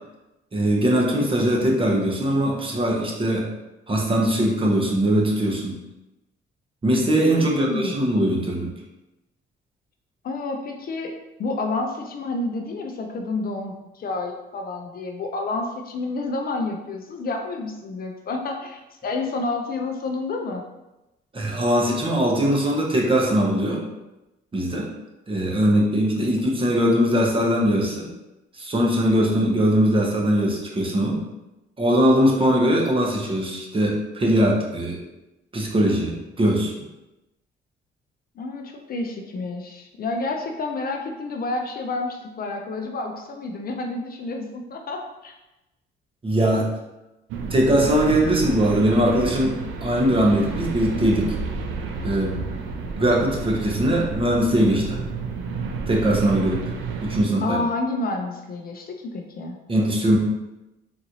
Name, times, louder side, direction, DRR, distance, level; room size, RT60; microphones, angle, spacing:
voice 1, 0.5-3.5 3.9-5.8 6.8-8.7 21.3-23.8 24.5-24.9 25.3-28.1 28.6-31.3 31.8-35.0 35.5-36.7 46.2-46.7 47.5-51.3 52.0-52.4 53.0-55.0 55.9-56.6 57.0-57.6 59.7-60.2, right 1 dB, 25° right, -1 dB, 0.9 m, -21 dB
voice 2, 7.4-8.1 10.2-11.1 11.4-20.6 38.4-45.4 57.4-59.6, left 3 dB, 50° left, 3 dB, 0.5 m, -29 dB
sound 1, 47.3-57.2, right 4 dB, 85° right, 0.4 m, -31 dB
3.9 x 2.5 x 2.9 m, 0.98 s
cardioid pair, 90°, 20 cm